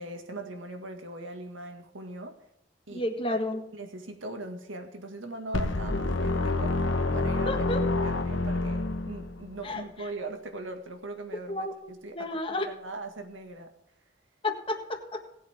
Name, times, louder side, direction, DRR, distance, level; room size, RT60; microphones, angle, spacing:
voice 1, 0.0-2.4 2.9-3.0 3.7-6.9 7.1-13.7, right 2 dB, 80° right, 5 dB, 1.9 m, -40 dB
voice 2, 2.9-3.6 7.5-7.8 9.6-10.1 11.5-12.7 14.4-15.2, left 1 dB, 25° left, 4 dB, 1.6 m, -32 dB
sound 1, 5.5-9.6, left 2 dB, 75° left, 1.2 m, -28 dB
18.5 x 8.4 x 3.6 m, 0.84 s
head